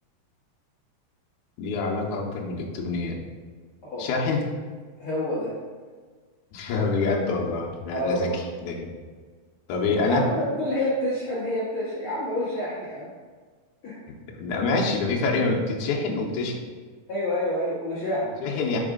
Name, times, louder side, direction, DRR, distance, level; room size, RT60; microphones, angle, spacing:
voice 1, 1.6-3.2 4.0-4.4 6.5-8.9 9.7-10.2 14.1-16.6 18.4-18.8, left 3 dB, 75° left, -1 dB, 2.1 m, -26 dB
voice 2, 5.0-5.5 7.9-8.4 9.8-13.1 13.8-14.0 17.1-18.8, left 1 dB, 55° left, -10 dB, 1.6 m, -28 dB
6.3 x 4.2 x 3.7 m, 1.5 s
omnidirectional pair, 3.8 m